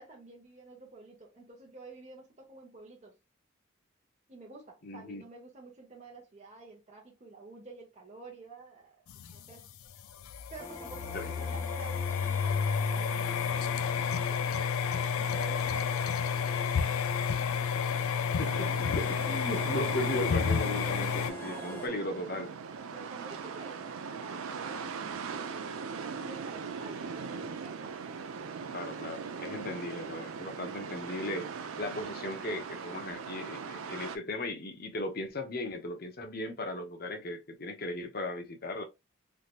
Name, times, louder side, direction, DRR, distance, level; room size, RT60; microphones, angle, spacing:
voice 1, 0.0-3.2 4.3-9.0 9.3-9.7 10.5-16.6 19.9-20.2 21.4-22.6 22.9-28.0 37.1-37.2, right 3 dB, 30° right, 0.9 m, -50 dB
voice 2, 4.8-5.2 11.1-11.6 18.1-22.5 28.7-31.5 31.8-38.8, left 1 dB, 45° left, 0.7 m, -37 dB
sound 1, 9.1-21.3, left 6 dB, 80° left, 0.4 m, -31 dB
sound 2, 10.6-21.9, left 2 dB, 10° left, 0.5 m, -46 dB
sound 3, 18.4-34.2, right 5 dB, 80° right, 0.5 m, -40 dB
3.3 x 2.8 x 2.4 m
head